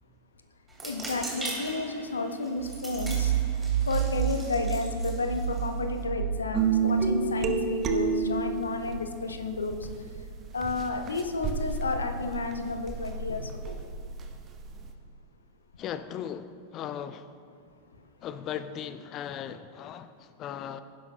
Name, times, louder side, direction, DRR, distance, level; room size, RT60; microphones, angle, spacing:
sound 1, 0.7-6.0, right 2 dB, 10° right, 3.0 m, -41 dB
voice 1, 0.8-3.3 3.9-9.8 10.5-13.8, left 3 dB, 75° left, 7 dB, 0.8 m, -32 dB
sound 2, 2.6-10.8 11.2-13.8, right 9 dB, 65° right, 0.3 m, -33 dB
sound 3, 6.5-8.9 9.7-14.9, right 6 dB, 25° right, 0.9 m, -30 dB
voice 2, 15.8-17.3 18.2-20.8, left 9 dB, 35° left, 12 dB, 0.4 m, -37 dB
17.5 x 10.5 x 2.2 m, 2.2 s
figure-of-eight pair, 90°, 0 cm